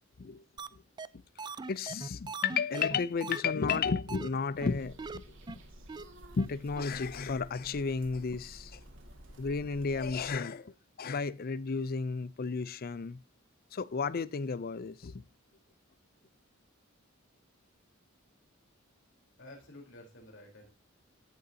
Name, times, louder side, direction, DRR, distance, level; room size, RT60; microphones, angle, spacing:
sound 1, 0.6-0.7 1.0-1.1 1.4-3.4 3.7-3.8 4.1-4.3 4.6-4.7 5.0-5.2 5.5-5.6 5.9-6.0 6.4-6.5 6.8-6.9, right 4 dB, 20° right, 0.4 m, -40 dB
voice 1, 1.7-5.6 6.4-8.8 9.4-13.2 13.7-15.2, left 5 dB, 45° left, 0.5 m, -33 dB
sound 2, 4.5-10.3, equal, 65° right, 2.4 m, -52 dB
voice 2, 19.3-20.7, left 1 dB, 60° left, 3.8 m, -51 dB
16.0 x 6.7 x 2.8 m
head